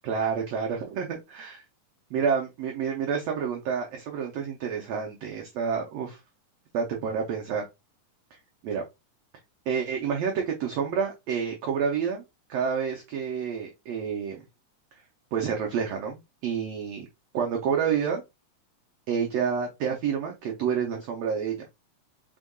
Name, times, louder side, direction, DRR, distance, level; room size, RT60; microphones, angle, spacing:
voice 1, 0.0-1.6 2.1-6.2 6.7-7.7 8.6-8.8 9.7-12.2 12.5-14.4 15.3-17.1 17.3-18.2 19.1-21.7, right 6 dB, 80° right, 1 dB, 1.4 m, -29 dB
5.0 x 3.5 x 2.2 m, 0.22 s
omnidirectional pair, 3.7 m